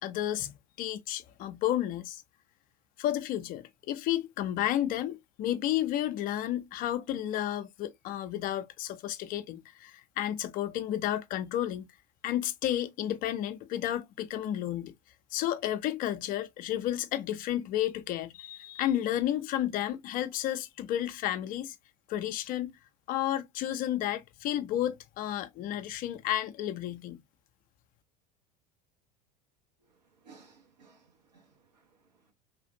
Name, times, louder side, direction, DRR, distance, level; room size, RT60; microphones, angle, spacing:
voice 1, 0.0-2.2 3.0-11.9 12.2-15.0 15.3-21.8 22.1-22.7 23.1-27.2, left 12 dB, 40° left, 0.5 m, -32 dB
voice 2, 29.9-32.3, right 5 dB, 80° right, 1.3 m, -60 dB
3.5 x 2.4 x 2.6 m
figure-of-eight pair, 75°, 21 cm